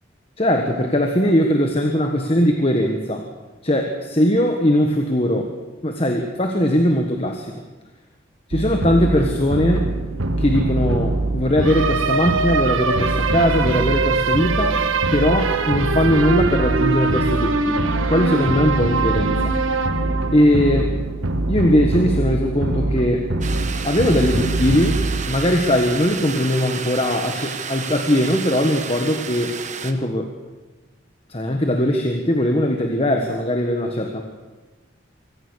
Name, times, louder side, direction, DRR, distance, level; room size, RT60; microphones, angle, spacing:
voice 1, 0.4-3.3 3.6-5.5 5.8-7.5 8.5-9.9 10.4-14.8 15.1-19.5 20.3-20.9 21.5-23.3 23.8-25.0 25.3-29.5 29.8-30.3 31.3-34.2, left 1 dB, 30° left, 3 dB, 1.5 m, -20 dB
sound 1, 8.5-26.1, right 3 dB, 85° right, 1.4 m, -22 dB
sound 2, 23.4-29.9, right 6 dB, 35° right, 1.2 m, -31 dB
24.5 x 16.5 x 6.5 m, 1.2 s
head